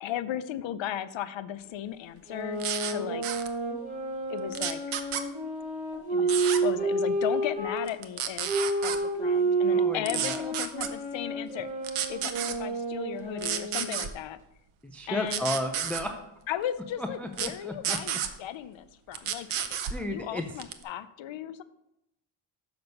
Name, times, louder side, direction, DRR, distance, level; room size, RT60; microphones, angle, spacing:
voice 1, 0.0-3.2 4.3-4.8 6.1-8.6 8.8-11.7 12.1-14.4 15.1-15.5 16.5-19.5 20.0-21.6, left 11 dB, 65° left, 14 dB, 0.6 m, -36 dB
sound 1, 2.3-7.8 8.4-14.0, right 2 dB, 15° right, 3.0 m, -30 dB
sound 2, 2.6-2.9 3.2-3.5 4.5-5.2 6.3-6.6 7.9-9.0 10.1-10.9 11.8-12.6 13.4-14.1 15.3-16.0 17.3-17.5 17.8-18.3 19.1-20.0 20.6-20.8, right 9 dB, 80° right, 0.8 m, -31 dB
voice 2, 9.7-10.4 14.8-16.2 17.0-18.0 19.9-20.4, left 1 dB, 5° left, 5 dB, 0.3 m, -33 dB
6.7 x 6.1 x 5.3 m, 0.86 s
wide cardioid pair, 145°, 49 cm